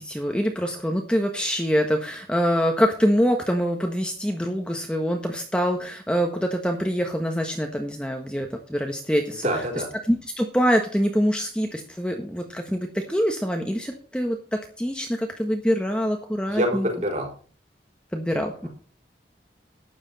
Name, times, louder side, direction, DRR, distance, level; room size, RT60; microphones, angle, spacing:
voice 1, 0.0-9.4 10.1-16.9 18.1-18.7, equal, 5° left, 3 dB, 1.4 m, -25 dB
voice 2, 9.3-9.9 16.5-17.3, equal, 40° right, 1 dB, 5.1 m, -26 dB
12.5 x 10.0 x 4.2 m, 0.41 s
head